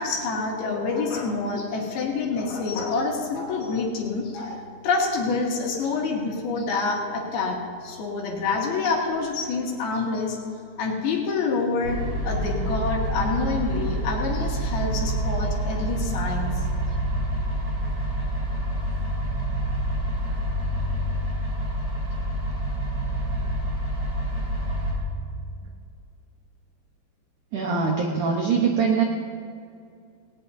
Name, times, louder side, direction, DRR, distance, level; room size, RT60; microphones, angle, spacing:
voice 1, 0.0-10.4 10.8-12.0 12.2-16.6, left 4 dB, 65° left, 0 dB, 3.3 m, -27 dB
sound 1, 11.8-24.9, right 1 dB, 35° right, 3.9 m, -27 dB
voice 2, 27.5-29.0, right 5 dB, 75° right, 0 dB, 1.8 m, -22 dB
19.0 x 18.5 x 2.8 m, 2.3 s
omnidirectional pair, 5.2 m